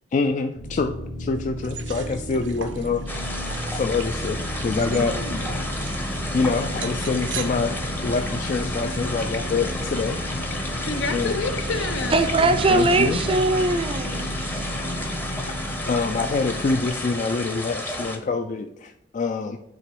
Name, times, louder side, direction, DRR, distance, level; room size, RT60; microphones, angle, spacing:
voice 1, 0.1-3.0 3.7-5.2 6.3-10.2 11.1-11.4 12.4-13.2 15.9-19.6, left 4 dB, 40° left, 7 dB, 0.3 m, -26 dB
sound 1, 0.5-16.9, equal, 60° left, 1.9 m, -32 dB
sound 2, 1.6-7.4, right 8 dB, 75° right, 0.6 m, -40 dB
sound 3, 3.1-18.2, left 1 dB, 10° left, 0.7 m, -32 dB
voice 2, 4.9-5.7 10.8-12.1, left 3 dB, 85° left, 6 dB, 0.8 m, -29 dB
voice 3, 12.1-14.6, right 2 dB, 30° right, 10 dB, 0.4 m, -21 dB
7.8 x 2.9 x 4.6 m, 0.83 s
head